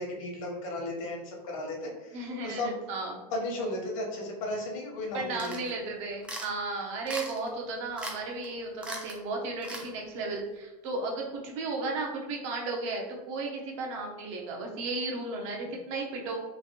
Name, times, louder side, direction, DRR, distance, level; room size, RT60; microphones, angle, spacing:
voice 1, 0.0-2.7 3.3-5.6, left 1 dB, 55° left, 0 dB, 0.9 m, -35 dB
voice 2, 2.1-3.2 5.1-16.4, right 3 dB, 55° right, 0 dB, 0.8 m, -34 dB
sound 1, 5.4-5.7 6.2-6.5 7.1-7.5 8.0-8.2 8.4-8.5 8.8-9.2 9.6-9.9, right 1 dB, 5° right, 0.3 m, -38 dB
3.2 x 2.4 x 2.8 m, 1.1 s
supercardioid pair, 135°, 20 cm